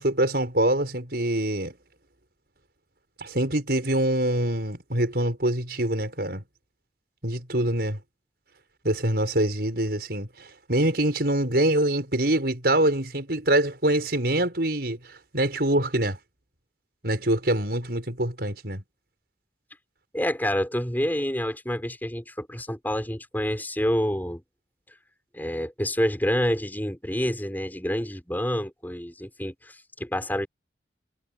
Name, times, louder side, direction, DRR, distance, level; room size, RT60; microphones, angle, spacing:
voice 1, 0.0-1.7 3.2-6.4 7.2-8.0 8.8-16.2 17.0-18.8, right 1 dB, 60° right, 7.0 m, -25 dB
voice 2, 20.1-24.4 25.3-30.5, equal, 10° left, 6.9 m, -28 dB
head